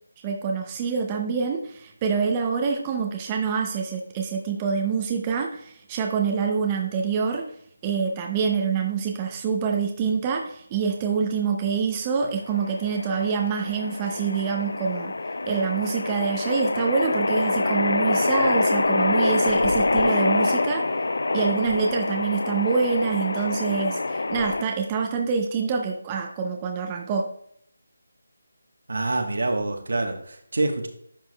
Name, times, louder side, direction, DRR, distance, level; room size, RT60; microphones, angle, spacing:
voice 1, 0.2-7.5 7.8-15.1 15.5-20.9 21.3-27.3, right 5 dB, 15° right, 2 dB, 0.5 m, -26 dB
sound 1, 12.5-24.6, left 2 dB, 70° left, 0.4 m, -25 dB
voice 2, 28.9-30.9, right 2 dB, 70° right, 5 dB, 1.1 m, -26 dB
10.5 x 4.7 x 2.2 m, 0.66 s
figure-of-eight pair, 175°, 0 cm